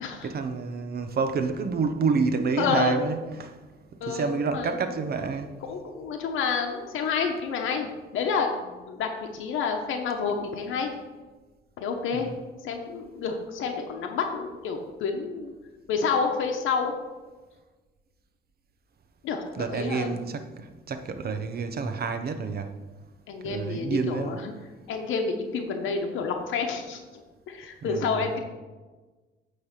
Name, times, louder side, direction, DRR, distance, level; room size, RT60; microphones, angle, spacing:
voice 1, 0.2-3.6 4.1-5.5 12.1-12.3 19.6-22.7 23.4-24.4 27.8-28.4, right 4 dB, 50° right, 8 dB, 0.9 m, -29 dB
voice 2, 2.6-3.0 4.0-4.8 5.6-10.9 11.8-12.3 12.6-15.5 15.9-16.9 19.2-20.1 23.3-24.5 24.9-27.0 27.5-28.4, left 5 dB, 80° left, 3 dB, 0.9 m, -29 dB
9.2 x 3.4 x 6.6 m, 1.3 s
cardioid pair, 90°, 20 cm